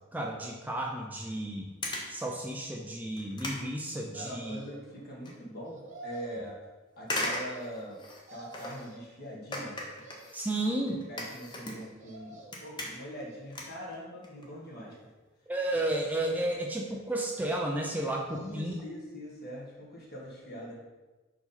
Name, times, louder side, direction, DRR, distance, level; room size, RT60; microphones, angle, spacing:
voice 1, 0.1-1.7 2.1-4.6 10.3-11.0 15.5-18.7, right 1 dB, 10° right, -1 dB, 0.5 m, -32 dB
sound 1, 1.2-1.4 1.8-2.2 2.7-2.8 3.2-4.5 4.9-5.3 5.8-5.9 7.0-8.9 9.5-12.1 12.4-13.2 13.5-14.5 14.8-15.0 15.7-15.8 16.0-16.1 16.3-16.4 16.7-17.0 17.4-17.5 17.8-17.9, left 1 dB, 20° left, 0.9 m, -38 dB
voice 2, 4.1-6.6 7.0-8.0 8.3-9.8 11.1-15.0 18.3-20.8, equal, 50° left, -3 dB, 1.6 m, -43 dB
sound 2, 4.2-5.0 5.6-6.5 7.2-8.0 8.3-9.1 9.7-10.6 11.8-12.7 13.2-13.9 14.5-15.3 16.3-17.2 17.9-18.8 19.2-19.3, right 2 dB, 35° right, 1.1 m, -51 dB
5.3 x 4.7 x 4.2 m, 1.2 s
head